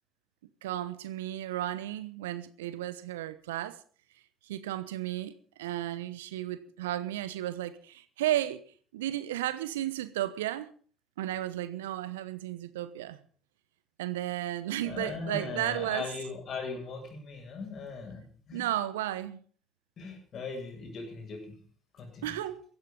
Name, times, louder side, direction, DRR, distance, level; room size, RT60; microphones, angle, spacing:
voice 1, 0.6-3.8 4.4-8.6 8.9-10.7 11.2-13.2 14.0-16.1 18.5-19.4 22.2-22.6, right 13 dB, 80° right, 1.1 m, -33 dB
voice 2, 14.8-18.6 20.0-21.6 21.9-22.4, left 4 dB, 50° left, 7.7 m, -39 dB
16.0 x 13.5 x 5.4 m
hypercardioid pair, 55°, 0 cm